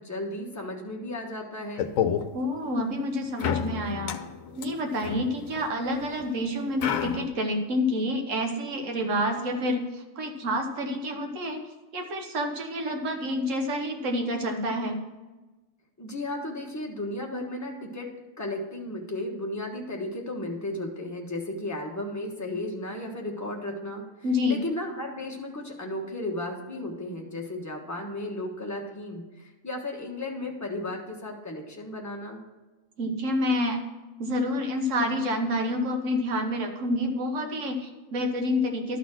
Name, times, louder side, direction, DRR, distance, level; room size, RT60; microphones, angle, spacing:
voice 1, 0.0-1.9 16.0-18.1 18.4-32.4, left 1 dB, 15° left, 0 dB, 1.2 m, -34 dB
sound 1, 1.8-2.2 3.4-6.1 6.8-7.3, left 8 dB, 90° left, 1.0 m, -30 dB
voice 2, 2.3-4.1 4.6-11.7 11.9-15.0 24.2-24.6 33.0-33.8 34.2-39.0, left 1 dB, 75° right, 4 dB, 1.4 m, -28 dB
12.0 x 4.1 x 6.1 m, 1.2 s
omnidirectional pair, 1.4 m